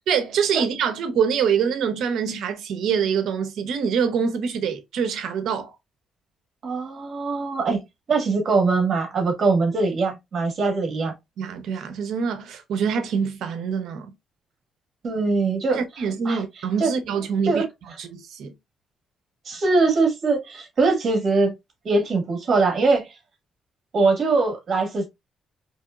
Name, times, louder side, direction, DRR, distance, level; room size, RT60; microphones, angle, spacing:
voice 1, 0.1-5.7 11.4-14.1 15.7-17.6 18.0-18.5, right 6 dB, 75° right, 0.8 m, -25 dB
voice 2, 6.6-11.1 15.0-15.8 16.2-16.4 16.8-16.9 17.5-17.6 19.4-21.5 21.8-23.2 23.9-25.1, right 3 dB, 50° right, 1.7 m, -22 dB
4.2 x 3.2 x 2.4 m
cardioid pair, 90°, 0 cm